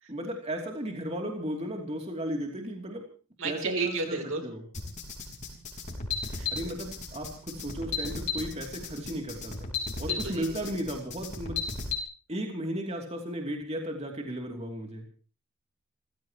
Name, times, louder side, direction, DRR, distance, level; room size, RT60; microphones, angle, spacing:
voice 1, 0.1-3.0 3.4-4.6 6.5-9.7 10.0-11.6 12.3-15.0, equal, 30° right, 1 dB, 3.0 m, -35 dB
voice 2, 3.4-4.4 6.2-6.7 10.1-10.4, right 3 dB, 60° right, 5 dB, 3.5 m, -33 dB
sound 1, 4.7-12.0, left 5 dB, 35° left, 5.1 m, -35 dB
29.5 x 15.5 x 3.1 m, 0.36 s
head